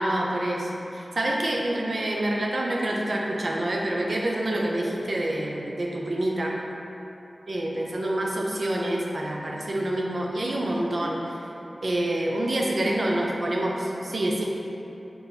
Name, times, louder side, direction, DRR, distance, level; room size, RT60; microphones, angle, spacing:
voice 1, 0.0-6.6 7.5-11.2 11.8-14.5, right 1 dB, 70° right, -1 dB, 0.5 m, -27 dB
5.2 x 2.9 x 2.8 m, 2.9 s
wide cardioid pair, 75°, 0 cm